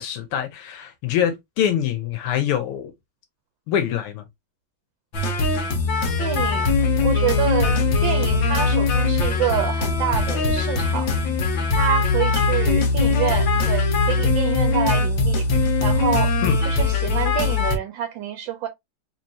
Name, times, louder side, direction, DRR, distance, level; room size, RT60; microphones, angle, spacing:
voice 1, 0.0-2.9 3.7-4.2 16.4-16.6, left 9 dB, 85° left, 1.6 m, -24 dB
sound 1, 5.1-17.8, left 3 dB, 65° left, 1.6 m, -21 dB
voice 2, 6.2-6.8 7.0-11.1 11.7-15.5 15.8-16.3 16.6-18.7, right 10 dB, 75° right, 1.2 m, -27 dB
4.3 x 3.0 x 2.6 m
omnidirectional pair, 2.4 m